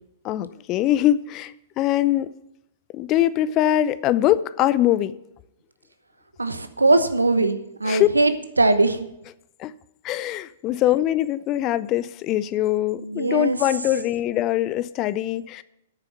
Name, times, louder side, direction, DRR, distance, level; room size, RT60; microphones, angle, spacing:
voice 1, 0.2-2.3 2.9-5.2 7.8-8.1 9.6-9.7 10.0-15.6, left 13 dB, 35° left, 0.5 m, -22 dB
voice 2, 6.4-9.1 13.0-13.6, right 2 dB, 85° right, 0.9 m, -21 dB
9.2 x 7.0 x 8.0 m
figure-of-eight pair, 110°, 0 cm